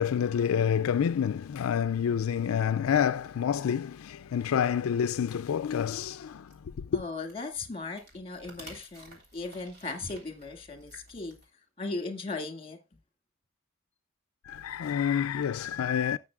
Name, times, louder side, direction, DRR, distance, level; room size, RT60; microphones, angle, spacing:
voice 1, 0.0-7.0 14.4-16.2, left 8 dB, 80° left, 0.4 m, -28 dB
sound 1, 5.9-11.4, right 1 dB, 50° right, 3.4 m, -53 dB
voice 2, 6.9-11.4 11.8-12.8, left 3 dB, 30° left, 1.9 m, -37 dB
17.0 x 6.9 x 2.3 m
head